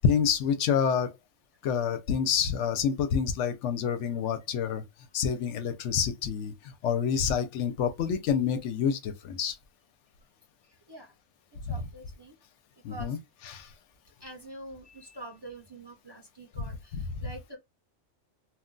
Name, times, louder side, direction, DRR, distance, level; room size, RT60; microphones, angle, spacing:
voice 1, 0.0-1.1 1.6-4.8 5.1-9.6 11.7-11.8 12.8-13.2 13.5-13.7 16.6-16.7 16.9-17.0, left 7 dB, 75° left, 0.9 m, -28 dB
voice 2, 11.7-12.3 12.9-13.2 14.2-17.6, right 1 dB, 30° right, 0.6 m, -45 dB
2.4 x 2.2 x 3.7 m
omnidirectional pair, 1.2 m